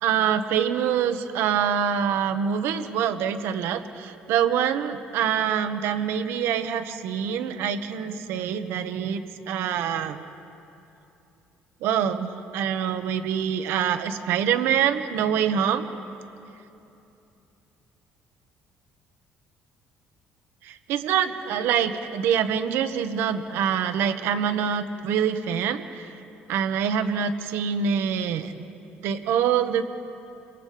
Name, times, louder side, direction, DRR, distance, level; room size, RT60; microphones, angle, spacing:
voice 1, 0.0-10.2 11.8-15.9 20.6-26.1 26.5-28.5 29.0-29.8, right 8 dB, 80° right, 8 dB, 1.3 m, -25 dB
29.0 x 23.5 x 5.1 m, 2.8 s
cardioid pair, 130°, 4 cm